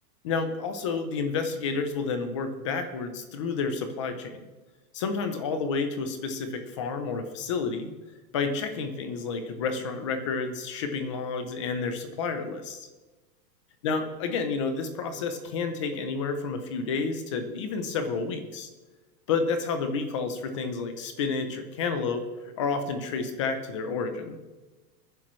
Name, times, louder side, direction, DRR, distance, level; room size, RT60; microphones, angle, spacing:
voice 1, 0.2-4.5 4.9-7.9 8.3-12.9 13.8-18.7 19.3-22.3 22.6-24.4, left 4 dB, 20° left, 8 dB, 0.5 m, -30 dB
21.5 x 10.5 x 3.1 m, 1.2 s
supercardioid pair, 170°, 49 cm